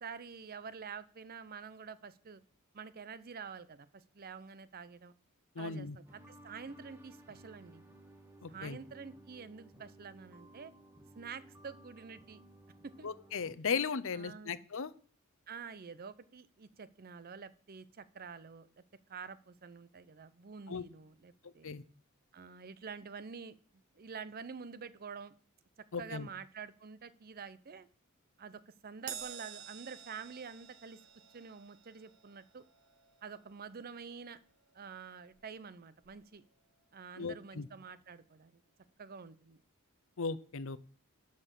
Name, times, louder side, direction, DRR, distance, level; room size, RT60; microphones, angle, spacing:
voice 1, 0.0-2.4 2.7-5.1 5.6-7.8 8.5-10.7 11.1-12.4 12.8-13.1 14.1-14.6 15.5-18.8 19.1-21.7 22.3-23.6 23.9-25.3 26.0-27.9 28.4-31.0 31.3-32.6 33.2-34.4 34.7-36.4 36.9-38.6 39.0-39.6, right 5 dB, 45° right, 16 dB, 0.6 m, -48 dB
voice 2, 5.6-6.0 8.4-8.8 13.0-14.9 20.7-20.9 21.4-21.8 25.9-26.3 37.2-37.7 40.2-40.8, left 5 dB, 60° left, 16 dB, 0.7 m, -37 dB
sound 1, 6.1-13.5, right 1 dB, 10° right, 1.5 m, -57 dB
Crash cymbal, 29.1-35.7 36.0-36.3 37.3-37.4, right 9 dB, 80° right, 1.1 m, -51 dB
12.0 x 4.3 x 7.4 m, 0.42 s
head